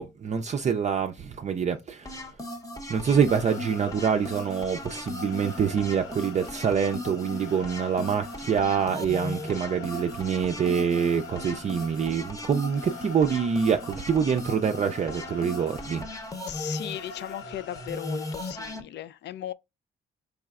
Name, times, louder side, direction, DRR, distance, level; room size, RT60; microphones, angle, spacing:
voice 1, 0.0-2.3 2.9-16.1, right 7 dB, 35° right, 0.4 m, -26 dB
sound 1, 2.0-18.8, left 2 dB, 15° left, 0.8 m, -38 dB
sound 2, 3.3-18.7, left 4 dB, 80° left, 0.8 m, -45 dB
voice 2, 16.5-19.5, left 12 dB, 60° left, 0.4 m, -37 dB
4.7 x 3.1 x 2.4 m
cardioid pair, 90°, 20 cm